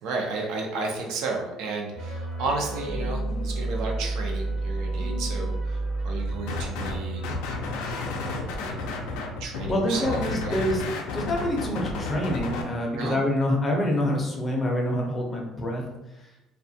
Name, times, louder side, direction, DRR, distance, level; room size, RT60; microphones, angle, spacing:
voice 1, 0.0-7.2 8.2-8.9 9.4-10.6 12.9-13.2, right 3 dB, 75° right, 0 dB, 0.5 m, -33 dB
sound 1, 1.9-7.4, right 2 dB, 20° right, 0.7 m, -30 dB
sound 2, 6.5-7.0 7.2-12.6, left 3 dB, 90° left, 0.3 m, -32 dB
voice 2, 9.7-10.8 11.1-15.9 16.1-16.3, left 1 dB, 20° left, 0 dB, 0.5 m, -26 dB
2.3 x 2.2 x 2.6 m, 0.94 s
cardioid pair, 135°, 0 cm